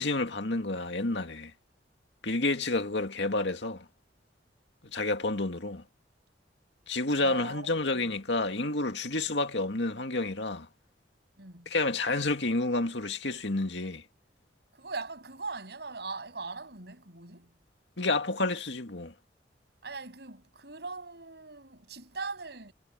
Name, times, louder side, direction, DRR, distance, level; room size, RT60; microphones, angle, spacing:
voice 1, 0.0-1.5 2.2-3.8 4.9-5.8 6.9-10.7 11.7-14.0 18.0-19.1, left 2 dB, 75° left, 2.2 m, -29 dB
voice 2, 7.1-8.1 9.1-9.2 11.4-11.7 14.7-17.5 19.8-22.7, right 3 dB, 65° right, 7.5 m, -40 dB
head